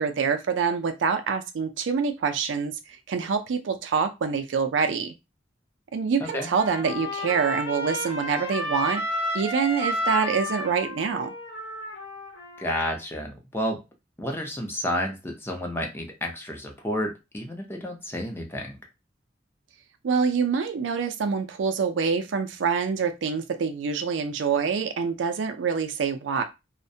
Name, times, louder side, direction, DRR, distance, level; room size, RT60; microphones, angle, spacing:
voice 1, 0.0-5.1 5.9-9.0 9.3-11.3 20.0-26.4, right 6 dB, 85° right, 8 dB, 0.4 m, -26 dB
Trumpet, 6.3-12.9, left 1 dB, 90° left, 1.1 m, -31 dB
voice 2, 12.6-13.8 14.2-18.8, equal, 15° left, 1 dB, 0.5 m, -31 dB
2.4 x 2.1 x 2.6 m, 0.25 s
head